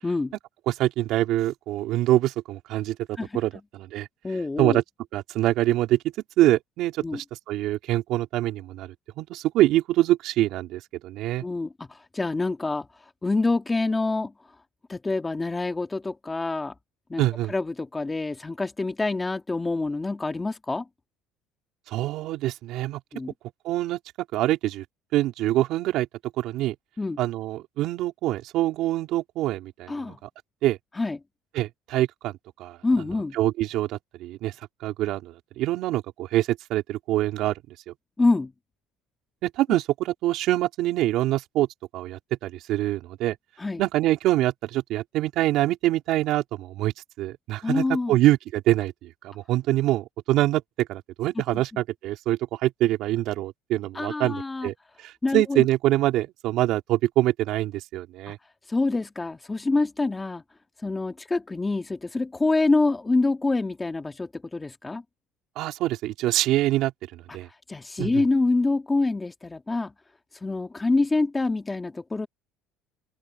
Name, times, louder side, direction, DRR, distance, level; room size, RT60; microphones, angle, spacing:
voice 1, 0.0-0.3 3.2-3.3 4.2-4.8 7.0-7.2 11.4-12.9 13.2-14.3 14.9-16.7 17.1-20.9 23.1-23.3 27.0-27.2 29.9-30.2 31.0-31.2 32.8-33.4 38.2-38.5 43.6-43.8 47.6-48.2 51.5-51.6 53.9-54.7 55.2-55.7 58.7-60.4 60.8-65.0 67.7-69.9 70.4-72.3, left 3 dB, 15° left, 2.1 m, -26 dB
voice 2, 0.7-3.0 3.3-4.1 4.6-4.8 5.1-6.0 6.4-11.4 17.2-17.5 21.9-23.0 23.6-24.0 24.3-24.8 25.1-26.1 26.4-26.7 27.2-30.1 30.6-30.8 31.5-32.8 33.3-34.5 34.8-37.5 37.9-38.0 39.4-41.7 41.9-43.4 43.8-46.9 47.2-58.4 65.6-67.5 68.0-68.2, right 15 dB, 65° right, 4.2 m, -25 dB
open air
cardioid pair, 120°, 0 cm